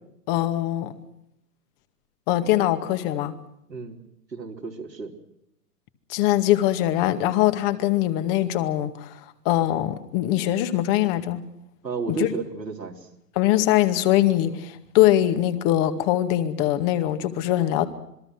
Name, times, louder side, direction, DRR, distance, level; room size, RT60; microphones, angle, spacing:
voice 1, 0.3-0.9 2.3-3.3 6.1-9.1 9.5-11.4 12.2-12.3 13.4-17.8, left 13 dB, 35° left, 10 dB, 2.2 m, -22 dB
voice 2, 4.3-5.1 11.8-13.1 14.4-14.5, right 4 dB, 90° right, 1 dB, 4.0 m, -33 dB
26.5 x 22.0 x 6.3 m, 0.78 s
figure-of-eight pair, 115°, 48 cm